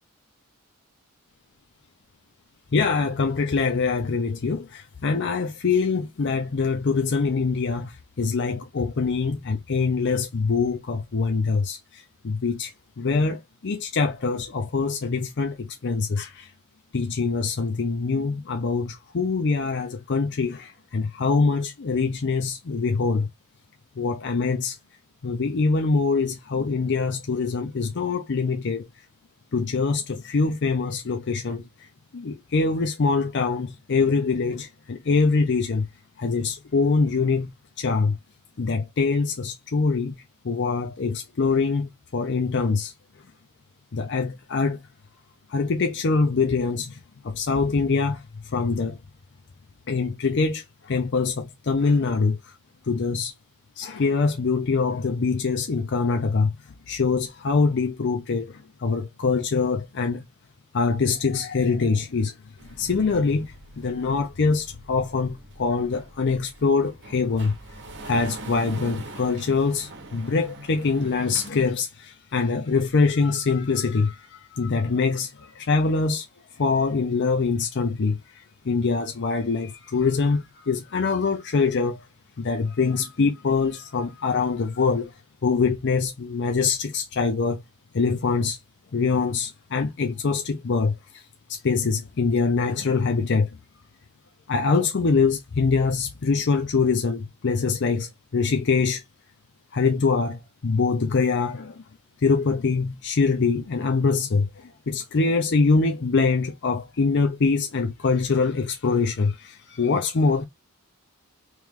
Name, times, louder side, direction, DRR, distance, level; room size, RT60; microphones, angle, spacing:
voice 1, 2.7-12.7 13.0-16.5 16.9-23.3 24.0-24.8 25.2-28.9 29.5-31.6 32.1-35.9 36.2-37.5 37.8-38.2 38.6-40.2 40.4-42.9 43.9-44.8 45.5-47.0 47.2-49.0 49.9-52.5 52.9-53.3 53.8-56.5 56.9-60.2 60.7-62.3 62.8-67.5 68.1-76.3 76.6-82.0 82.4-85.1 85.4-87.6 87.9-88.6 88.9-90.9 91.5-93.5 94.5-99.0 99.7-101.8 102.2-110.5, left 4 dB, 50° left, 0.5 m, -24 dB
sound 1, 62.6-71.5, right 1 dB, 55° right, 0.9 m, -43 dB
3.1 x 3.0 x 3.5 m
head